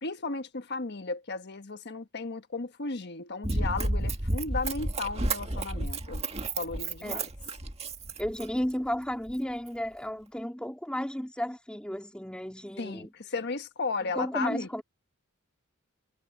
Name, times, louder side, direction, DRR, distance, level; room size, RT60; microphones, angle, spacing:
voice 1, 0.0-6.2 6.6-7.3 12.8-14.8, left 3 dB, 55° left, 1.4 m, -35 dB
Run, 3.4-8.7 9.3-9.4, right 2 dB, 30° right, 1.8 m, -31 dB
voice 2, 8.2-13.1 14.2-14.8, equal, 5° left, 2.8 m, -33 dB
head